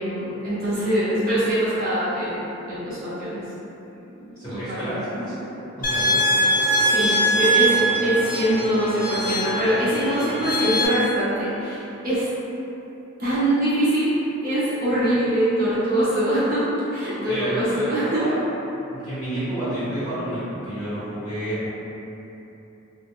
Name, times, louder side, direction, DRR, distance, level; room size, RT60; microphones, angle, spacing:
voice 1, 0.0-3.4 4.1-4.9 6.8-7.7 8.0-12.3 13.2-16.6 16.9-18.2, right 1 dB, 45° right, -11 dB, 0.6 m, -23 dB
voice 2, 4.4-5.4 5.7-6.2 17.3-18.4 18.9-21.7, right 1 dB, 20° left, -16 dB, 1.3 m, -30 dB
sound 1, 5.8-10.9, right 1 dB, 40° left, 0.5 m, -22 dB
2.4 x 2.0 x 3.5 m, 3.0 s
head